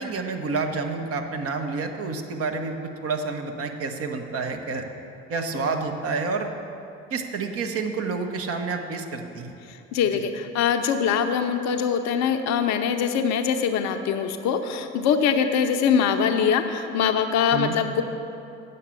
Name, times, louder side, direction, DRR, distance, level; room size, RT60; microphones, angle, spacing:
voice 1, 0.0-4.8 5.3-6.5 7.1-9.5 10.1-10.2 17.5-17.7, right 4 dB, 40° right, 4 dB, 1.0 m, -29 dB
voice 2, 9.7-18.0, left 7 dB, 50° left, 7 dB, 0.7 m, -23 dB
8.4 x 6.6 x 7.1 m, 2.7 s
figure-of-eight pair, 55°, 36 cm